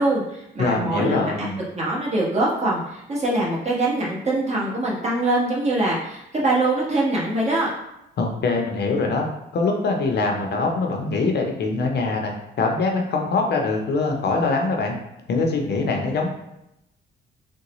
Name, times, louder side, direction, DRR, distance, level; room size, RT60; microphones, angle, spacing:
voice 1, 0.0-1.3 1.7-7.7, right 2 dB, 35° right, -5 dB, 1.2 m, -23 dB
voice 2, 0.6-1.6 8.2-9.3 9.5-14.9 15.3-16.3, left 3 dB, 55° left, 2 dB, 0.6 m, -23 dB
3.7 x 2.2 x 3.0 m, 0.85 s
cardioid pair, 90°, 20 cm